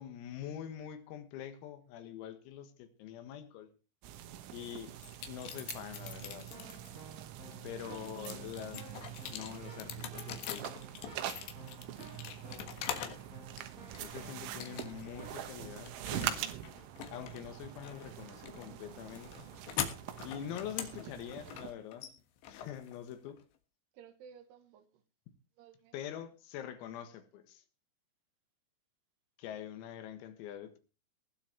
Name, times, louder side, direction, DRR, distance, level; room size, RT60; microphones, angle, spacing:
voice 1, 0.0-3.7 4.5-4.9 5.3-6.6 7.6-8.9 9.3-10.9 14.0-16.4 17.1-19.5 19.8-20.0 20.2-22.1 22.5-23.4 25.9-27.6 29.4-30.8, left 10 dB, 85° left, 4.3 m, -45 dB
sound 1, 4.0-21.7, right 12 dB, 75° right, 3.7 m, -44 dB
sound 2, 5.0-7.0 7.5-13.3 13.6-14.2 14.6-15.2 15.5-23.4, left 9 dB, 70° left, 3.4 m, -43 dB
Keyboard (musical), 6.2-16.5, right 1 dB, 15° right, 5.6 m, -54 dB
voice 2, 7.9-8.4 11.9-12.7 23.9-25.0 25.6-25.9, right 8 dB, 60° right, 3.6 m, -55 dB
19.5 x 7.8 x 4.6 m
omnidirectional pair, 6.0 m